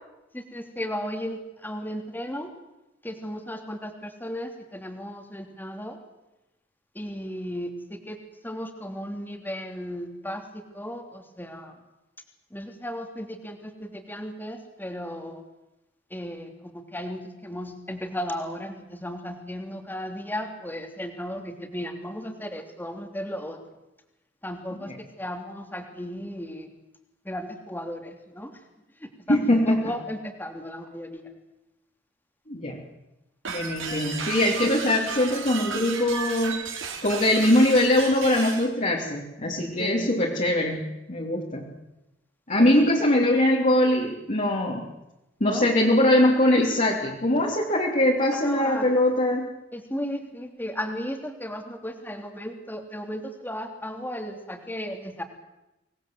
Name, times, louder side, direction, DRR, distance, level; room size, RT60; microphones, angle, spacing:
voice 1, 0.3-2.5 3.0-6.0 6.9-8.2 8.4-11.7 12.5-15.4 16.1-23.6 24.4-26.7 27.2-28.6 29.0-31.3 39.8-40.1 42.6-42.9 45.4-45.7 48.3-48.9 49.7-55.2, equal, 10° left, 4 dB, 3.0 m, -35 dB
voice 2, 29.3-29.8 32.5-32.8 33.5-36.6 37.0-40.8 41.1-41.7 42.5-44.9 45.4-49.5 50.0-50.2, left 1 dB, 40° left, -3 dB, 3.4 m, -22 dB
sound 1, 33.5-38.7, right 5 dB, 75° right, 4.8 m, -34 dB
25.5 x 19.5 x 7.9 m, 0.96 s
head